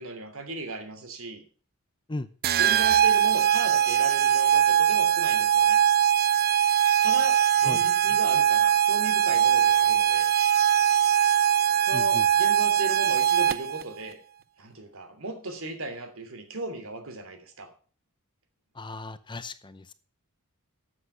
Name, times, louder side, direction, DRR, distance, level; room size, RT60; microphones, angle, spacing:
voice 1, 0.0-1.4 2.6-5.8 7.0-10.3 11.8-14.2 14.6-17.7, right 2 dB, 65° right, 7 dB, 2.9 m, -36 dB
sound 1, 2.4-13.8, right 9 dB, 45° right, 0.5 m, -21 dB
voice 2, 11.9-12.3 18.7-19.9, left 2 dB, 20° left, 13 dB, 0.7 m, -36 dB
12.5 x 7.7 x 5.7 m, 0.40 s
head